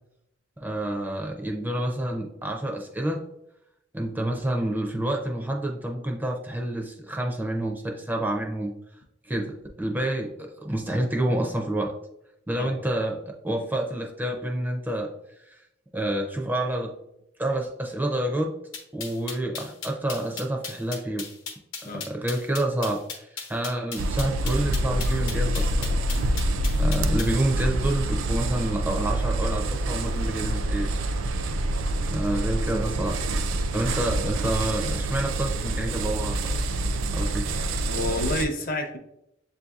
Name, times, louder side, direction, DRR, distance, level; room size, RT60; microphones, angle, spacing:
voice 1, 0.6-3.2 3.9-8.7 9.3-11.9 12.5-15.1 15.5-15.6 15.9-16.9 17.4-18.6 18.9-21.3 21.8-26.0 26.3-26.5 26.8-30.9 32.1-33.2 33.7-36.7 37.1-37.5, right 1 dB, 10° right, 1 dB, 0.4 m, -28 dB
sound 1, 18.7-27.4, left 5 dB, 90° left, 0.9 m, -36 dB
sound 2, 24.0-38.5, right 1 dB, 85° right, 0.4 m, -26 dB
voice 2, 37.9-39.0, left 2 dB, 45° left, 4 dB, 0.6 m, -29 dB
7.3 x 2.6 x 2.3 m, 0.83 s
head